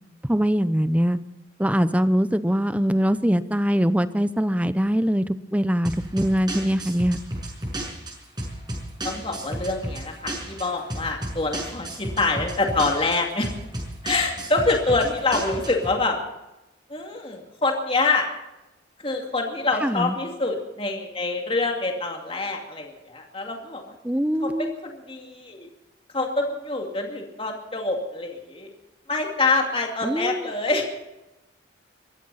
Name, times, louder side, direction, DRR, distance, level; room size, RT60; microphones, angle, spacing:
voice 1, 0.3-1.2 1.6-7.2 19.8-20.2 24.0-24.7 30.0-30.5, equal, 5° right, 13 dB, 0.7 m, -22 dB
sound 1, 5.8-15.9, right 1 dB, 25° right, 6.0 m, -33 dB
voice 2, 9.0-13.5 14.0-16.2 16.9-18.3 19.0-23.9 24.4-25.7 26.1-28.7 29.1-30.9, left 3 dB, 30° left, 2 dB, 2.4 m, -26 dB
22.5 x 15.0 x 4.2 m, 0.96 s
head